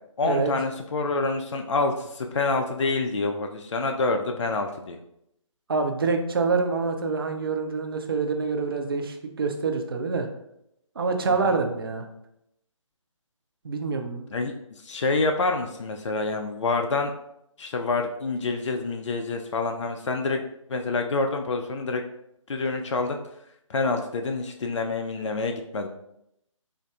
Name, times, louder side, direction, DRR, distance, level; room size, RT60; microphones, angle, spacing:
voice 1, 0.2-5.0 11.3-11.6 14.3-14.5 14.8-17.1 17.6-20.4 20.7-22.0 22.5-23.2 23.7-25.9, left 3 dB, 65° left, 4 dB, 0.4 m, -27 dB
voice 2, 5.7-10.3 11.0-12.1 13.6-14.3, right 4 dB, 45° right, 5 dB, 0.4 m, -26 dB
4.4 x 2.5 x 2.3 m, 0.79 s
figure-of-eight pair, 145°, 17 cm